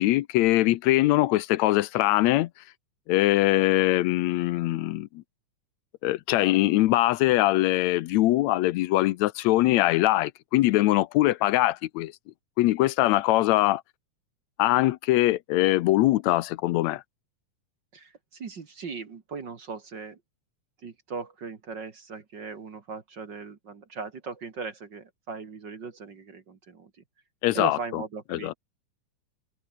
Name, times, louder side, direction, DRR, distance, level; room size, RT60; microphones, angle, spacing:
voice 1, 0.0-2.5 3.1-5.1 6.0-12.1 12.6-13.8 14.6-17.0 27.4-27.8 28.3-28.5, left 16 dB, 75° left, 1.8 m, -22 dB
voice 2, 17.9-20.2 20.8-26.9 27.5-28.5, right 5 dB, 40° right, 2.1 m, -38 dB
omnidirectional pair, 3.5 m